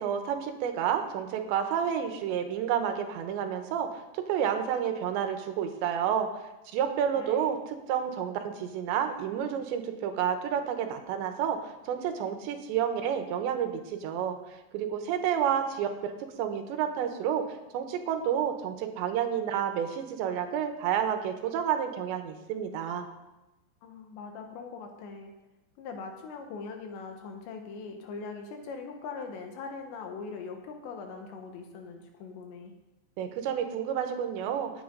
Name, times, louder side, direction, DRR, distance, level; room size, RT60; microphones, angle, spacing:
voice 1, 0.0-3.9 4.3-14.4 14.7-16.1 16.4-17.4 17.7-23.1 33.2-34.7, right 8 dB, 90° right, 6 dB, 3.3 m, -30 dB
voice 2, 7.2-7.5 23.8-25.3 25.8-32.7, left 4 dB, 80° left, 4 dB, 3.6 m, -41 dB
16.0 x 9.4 x 3.9 m, 1.0 s
omnidirectional pair, 5.0 m